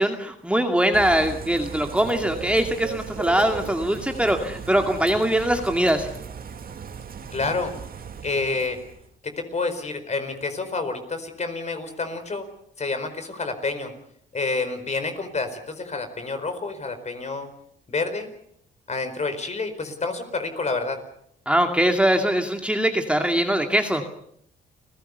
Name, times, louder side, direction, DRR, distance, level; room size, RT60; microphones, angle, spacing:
voice 1, 0.0-6.1 21.5-24.0, right 1 dB, 5° right, 4 dB, 2.3 m, -22 dB
Bird / Rain, 0.9-9.1, right 6 dB, 50° right, 2.4 m, -37 dB
voice 2, 7.3-7.7 8.2-8.8 9.2-12.5 12.8-13.9 14.3-17.5 17.9-18.3 18.9-21.0, left 3 dB, 35° left, 8 dB, 4.6 m, -28 dB
29.0 x 16.5 x 6.9 m, 0.69 s
supercardioid pair, 70°, 19 cm